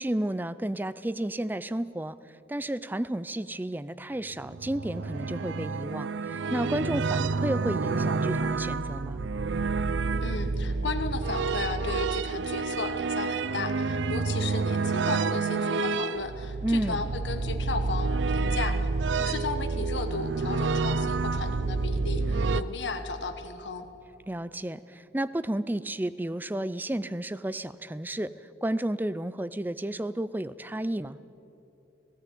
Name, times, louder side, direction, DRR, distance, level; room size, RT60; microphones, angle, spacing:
voice 1, 0.0-2.2 2.5-9.2 16.6-17.0 24.3-28.3 28.6-31.2, right 1 dB, 10° right, 16 dB, 0.4 m, -32 dB
sound 1, 4.3-22.6, right 4 dB, 85° right, 0.5 m, -29 dB
voice 2, 10.2-18.9 19.2-23.9, left 3 dB, 75° left, 7 dB, 1.2 m, -35 dB
17.0 x 16.5 x 9.3 m, 2.9 s
head